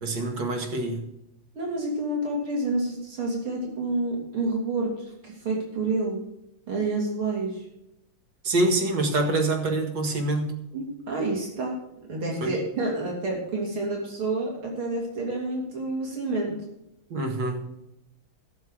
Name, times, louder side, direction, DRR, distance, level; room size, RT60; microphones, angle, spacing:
voice 1, 0.0-1.1 8.4-10.5 12.4-12.6 17.1-17.7, right 2 dB, 60° right, 3 dB, 2.4 m, -26 dB
voice 2, 1.5-6.2 6.7-7.6 10.7-11.8 12.1-16.5, right 2 dB, 80° right, -2 dB, 3.6 m, -29 dB
13.5 x 6.8 x 6.4 m, 0.83 s
omnidirectional pair, 2.3 m